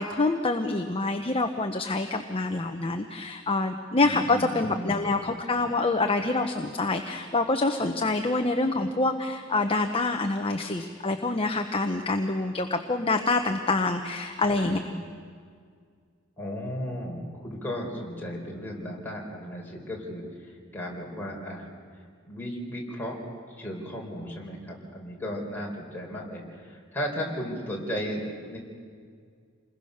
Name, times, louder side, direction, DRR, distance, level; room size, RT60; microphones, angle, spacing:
voice 1, 0.0-14.8, left 3 dB, 25° left, 5 dB, 0.9 m, -26 dB
voice 2, 4.0-5.1 14.7-15.0 16.4-21.7 22.2-23.2 23.6-28.6, equal, 10° left, -2 dB, 4.4 m, -35 dB
28.0 x 21.5 x 6.6 m, 2.1 s
head